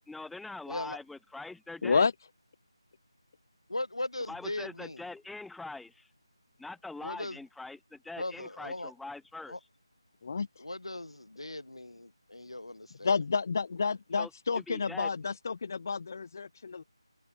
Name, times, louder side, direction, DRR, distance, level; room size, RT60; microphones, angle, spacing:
voice 1, 0.1-2.1 4.3-6.1 6.6-9.6 14.2-15.1, left 3 dB, ahead, 2.1 m, -43 dB
voice 2, 0.7-1.0 3.7-5.0 7.0-7.4 8.2-8.9 9.5-9.6 10.6-13.1, left 2 dB, 75° left, 5.7 m, -38 dB
voice 3, 10.2-10.6 13.0-16.8, left 5 dB, 35° left, 1.2 m, -30 dB
figure-of-eight pair, 165°, 3 cm